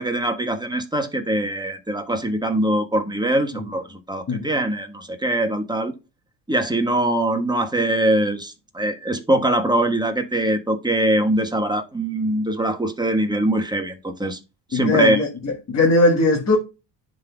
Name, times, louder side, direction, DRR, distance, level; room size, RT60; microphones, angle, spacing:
voice 1, 0.0-5.9 6.5-14.4 14.7-15.2, right 1 dB, 10° right, 1.3 m, -22 dB
voice 2, 14.7-16.6, left 3 dB, 35° left, 1.7 m, -19 dB
11.0 x 4.0 x 2.3 m
supercardioid pair, 75°, 45 cm